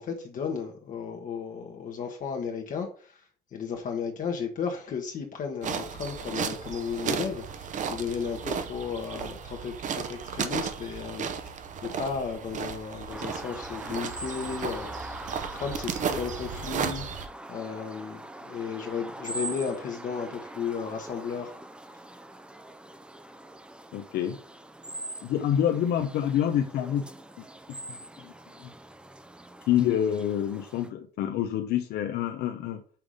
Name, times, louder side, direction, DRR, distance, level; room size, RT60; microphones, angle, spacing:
voice 1, 0.0-21.5, left 6 dB, 50° left, 1.1 m, -34 dB
sound 1, 5.6-17.3, right 7 dB, 50° right, 0.8 m, -34 dB
sound 2, 13.1-30.9, right 1 dB, 5° right, 0.5 m, -43 dB
voice 2, 23.9-24.4 25.2-27.0 27.9-28.3 28.6-28.7 29.7-32.8, left 10 dB, 70° left, 0.7 m, -27 dB
5.8 x 3.5 x 4.9 m
cardioid pair, 110°, 17 cm